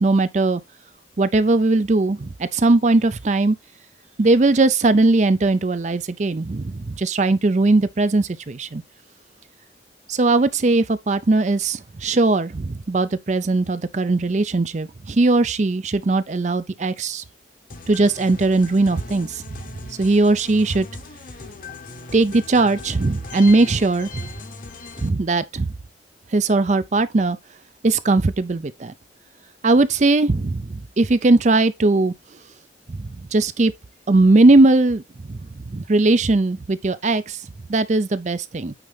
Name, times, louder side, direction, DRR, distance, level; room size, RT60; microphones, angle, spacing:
voice 1, 0.0-0.6 1.2-3.6 4.2-8.8 10.1-17.2 17.9-19.4 20.0-20.9 22.1-24.2 25.0-25.7 26.3-27.4 27.8-28.9 29.6-32.1 32.9-33.7 34.1-35.0 35.3-35.4 35.7-37.4 37.7-38.7, right 2 dB, 40° right, 0.5 m, -19 dB
sound 1, 17.7-25.1, left 3 dB, 45° left, 0.9 m, -38 dB
9.0 x 3.8 x 3.4 m
head